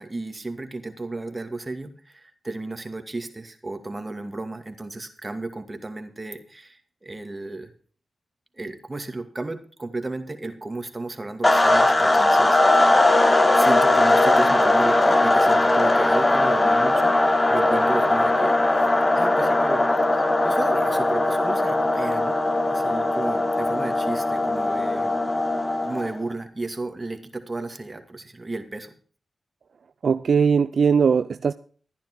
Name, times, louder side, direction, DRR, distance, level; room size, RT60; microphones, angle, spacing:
voice 1, 0.0-7.7 8.5-12.9 13.5-17.2 17.5-19.9 20.1-22.4 22.7-25.2 25.8-28.9, right 2 dB, 30° right, 2.4 m, -33 dB
sound 1, 11.4-26.2, left 2 dB, 30° left, 1.4 m, -19 dB
voice 2, 30.0-31.5, right 6 dB, 70° right, 0.4 m, -19 dB
12.5 x 10.5 x 4.7 m
supercardioid pair, 40°, 0 cm